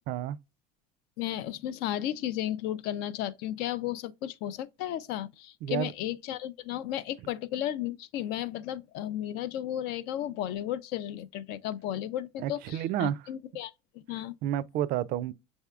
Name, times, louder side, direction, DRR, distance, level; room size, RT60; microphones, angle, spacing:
voice 1, 0.1-0.4 5.6-5.9 12.4-13.2 14.4-15.3, right 11 dB, 60° right, 0.4 m, -30 dB
voice 2, 1.2-14.3, left 12 dB, 65° left, 0.5 m, -34 dB
6.5 x 3.4 x 2.3 m
supercardioid pair, 120°, 17 cm